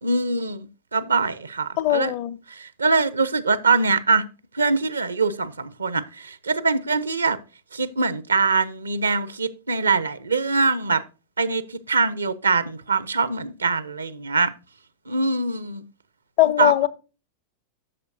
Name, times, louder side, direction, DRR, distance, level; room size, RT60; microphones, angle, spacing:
voice 1, 0.0-2.1 2.5-4.3 4.5-7.4 7.7-11.0 11.4-14.5 15.1-15.8 16.4-16.7, right 4 dB, 75° right, 0.6 m, -23 dB
voice 2, 1.8-2.4 16.4-16.9, left 14 dB, 45° left, 0.6 m, -20 dB
13.0 x 6.8 x 2.6 m
figure-of-eight pair, 90°, 0 cm